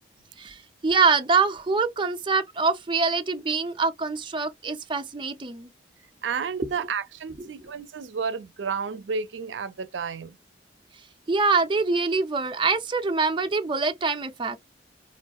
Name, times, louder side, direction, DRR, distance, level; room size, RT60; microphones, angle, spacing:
voice 1, 0.4-5.7 7.4-7.7 11.3-14.6, right 4 dB, 25° right, 0.5 m, -25 dB
voice 2, 6.2-10.4, right 6 dB, 90° right, 0.5 m, -31 dB
4.4 x 2.4 x 2.2 m
head